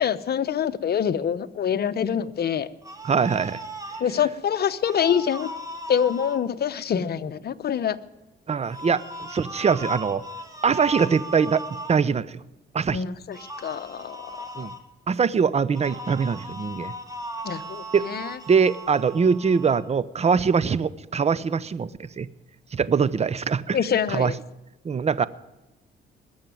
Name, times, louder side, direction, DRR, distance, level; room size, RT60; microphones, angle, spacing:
voice 1, 0.0-2.7 4.0-5.5 5.9-8.0 12.9-14.7 17.4-18.4 23.7-24.3, left 8 dB, 55° left, 11 dB, 1.0 m, -25 dB
sound 1, 2.8-4.1 4.8-6.4 8.7-11.9 13.3-14.8 15.8-19.8, right 1 dB, 15° right, 2.5 m, -37 dB
voice 2, 3.0-3.6 8.5-10.2 10.6-11.6 11.9-12.4 12.7-13.0 14.6-14.7 15.1-16.9 17.9-18.1 18.5-22.3 22.7-23.8 24.1-24.3 24.8-25.3, right 6 dB, 35° right, 18 dB, 0.7 m, -23 dB
20.5 x 7.2 x 9.2 m, 1.0 s
cardioid pair, 90°, 20 cm